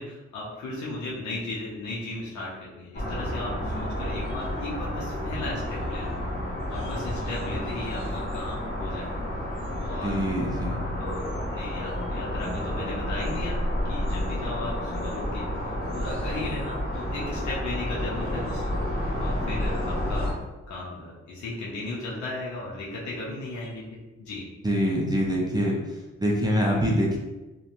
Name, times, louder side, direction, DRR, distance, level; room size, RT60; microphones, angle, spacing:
voice 1, 0.0-6.1 6.7-9.2 9.9-10.3 11.0-13.6 13.9-18.6 19.2-20.3 20.7-24.5, left 2 dB, 80° left, -5 dB, 0.6 m, -36 dB
sound 1, 2.9-20.3, left 1 dB, 35° left, 1.4 m, -30 dB
voice 2, 10.0-10.8 24.6-25.8 26.2-27.2, equal, 15° right, -3 dB, 0.5 m, -24 dB
2.8 x 2.2 x 2.5 m, 1.1 s
cardioid pair, 75°, 29 cm